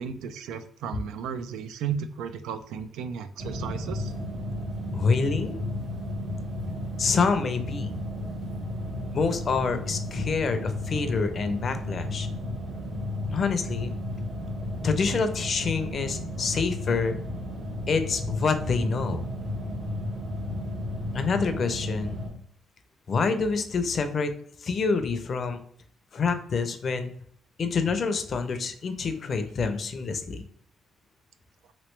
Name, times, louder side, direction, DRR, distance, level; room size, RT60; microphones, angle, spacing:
voice 1, 0.0-4.1, right 7 dB, 85° right, 10 dB, 0.3 m, -34 dB
sound 1, 3.4-22.3, left 1 dB, 65° right, 1.4 m, -33 dB
voice 2, 4.9-5.6 7.0-7.9 9.1-12.3 13.3-14.0 14.8-17.2 17.9-19.2 21.1-22.2 23.1-24.3 24.6-25.6 26.1-27.1 27.6-30.4, left 4 dB, 50° left, 8 dB, 0.5 m, -27 dB
3.1 x 2.9 x 3.1 m, 0.63 s
cardioid pair, 90°, 0 cm